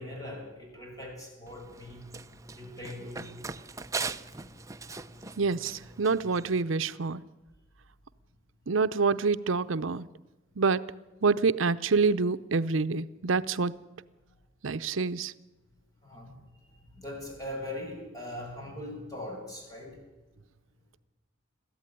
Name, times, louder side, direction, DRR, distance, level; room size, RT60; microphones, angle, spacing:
voice 1, 0.0-2.1 2.5-3.3 16.0-20.0, left 1 dB, 20° left, 0 dB, 7.3 m, -41 dB
Run, 1.5-6.6, right 4 dB, 15° right, 0.7 m, -40 dB
voice 2, 5.4-7.2 8.7-10.1 10.6-10.8 11.2-13.7 14.6-15.3, right 4 dB, 75° right, 12 dB, 0.7 m, -27 dB
22.0 x 15.0 x 10.0 m, 1.1 s
head